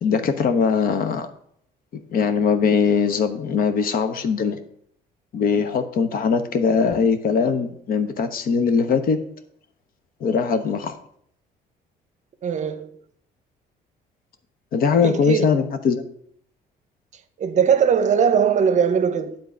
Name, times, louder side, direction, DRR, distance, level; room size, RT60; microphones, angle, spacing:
voice 1, 0.0-1.3 2.1-4.6 5.3-9.2 10.2-11.0 14.7-16.0, left 5 dB, 60° left, 1.0 m, -21 dB
voice 2, 12.4-12.9 15.0-15.5 17.4-19.4, right 7 dB, 45° right, 0.8 m, -20 dB
9.3 x 3.9 x 7.2 m
cardioid pair, 110°, 17 cm